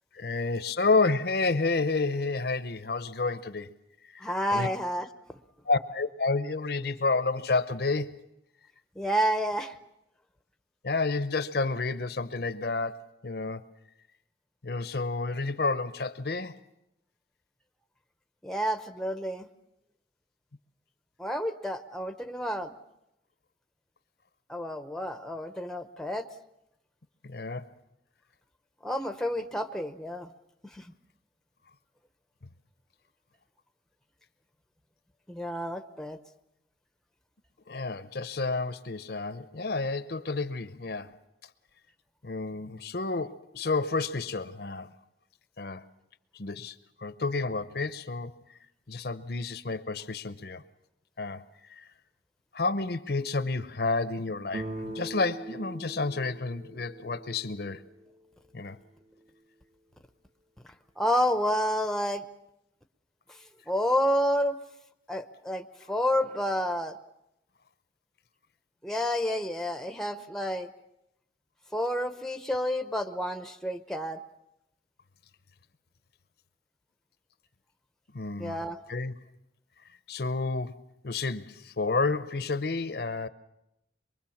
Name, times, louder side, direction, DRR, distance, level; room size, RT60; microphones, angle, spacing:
voice 1, 0.1-3.7 4.0-4.7 5.7-8.2 10.8-13.7 14.6-16.6 27.2-27.7 37.7-41.2 42.2-44.9 45.6-45.8 46.3-48.3 48.9-50.6 51.2-51.4 51.7-51.9 52.5-57.8 58.5-58.8 78.1-78.6 78.9-79.1 80.1-83.3, left 3 dB, 55° left, 0.8 m, -30 dB
voice 2, 4.2-5.1 9.0-9.7 18.4-19.5 21.2-22.8 24.5-26.3 28.8-30.3 35.3-36.2 61.0-62.2 63.7-64.6 65.1-67.0 68.8-70.7 71.7-74.2 78.4-78.8, equal, 5° left, 0.8 m, -29 dB
sound 1, 54.5-58.1, right 2 dB, 35° right, 1.3 m, -41 dB
23.5 x 23.5 x 7.2 m
head